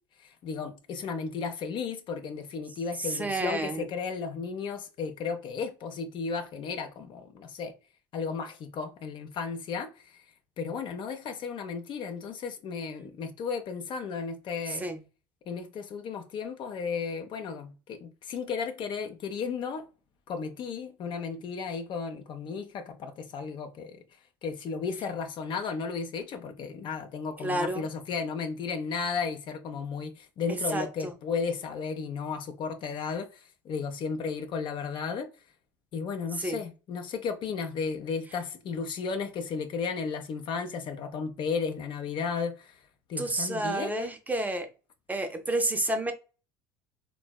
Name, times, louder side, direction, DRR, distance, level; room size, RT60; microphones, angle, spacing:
voice 1, 0.2-7.7 8.1-10.2 10.6-14.8 15.5-19.8 20.3-24.0 24.4-35.3 35.9-42.8 43.1-44.1, left 5 dB, 45° left, 0.4 m, -34 dB
voice 2, 3.0-3.9 14.7-15.0 27.4-27.9 30.5-31.1 36.4-36.6 43.2-44.7 45.1-46.1, right 2 dB, 15° right, 0.5 m, -30 dB
3.3 x 2.0 x 2.2 m
hypercardioid pair, 65°, 11 cm